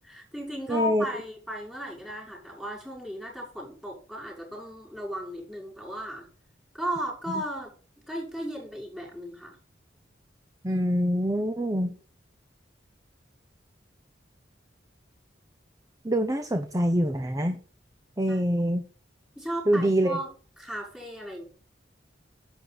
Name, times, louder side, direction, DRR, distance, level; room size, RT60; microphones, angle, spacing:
voice 1, 0.0-6.3 6.7-7.7 8.1-9.6 18.3-18.5 19.4-20.3 20.6-21.4, equal, 5° right, -2 dB, 5.7 m, -35 dB
voice 2, 0.7-1.0 10.6-11.9 16.0-17.6 18.2-18.8 19.7-20.2, equal, 20° right, 6 dB, 0.9 m, -25 dB
10.5 x 8.1 x 4.1 m, 0.41 s
head